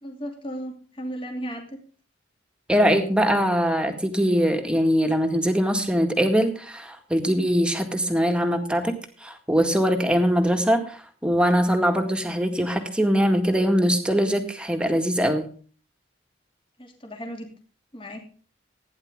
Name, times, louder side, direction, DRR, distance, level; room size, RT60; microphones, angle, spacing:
voice 1, 0.0-1.8 16.8-17.5 17.9-18.3, equal, 30° left, 2 dB, 2.8 m, -35 dB
voice 2, 2.7-15.5, equal, 5° right, 5 dB, 1.9 m, -22 dB
16.0 x 10.0 x 3.6 m, 0.40 s
head